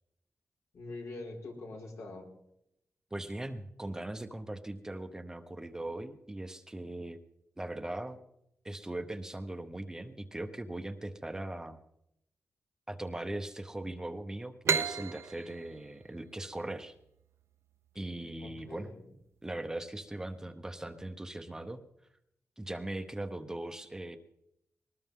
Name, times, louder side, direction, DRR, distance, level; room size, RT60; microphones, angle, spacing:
voice 1, 0.7-2.3 18.4-19.1, left 2 dB, 80° left, -1 dB, 5.1 m, -44 dB
voice 2, 3.1-7.2 7.6-8.2 8.6-11.8 12.9-16.9 17.9-18.9 19.4-21.8 22.6-24.2, right 1 dB, 10° right, 8 dB, 0.8 m, -39 dB
sound 1, 14.6-18.1, right 6 dB, 65° right, 0.7 m, -34 dB
21.0 x 19.0 x 3.7 m, 0.79 s
wide cardioid pair, 175°, 5 cm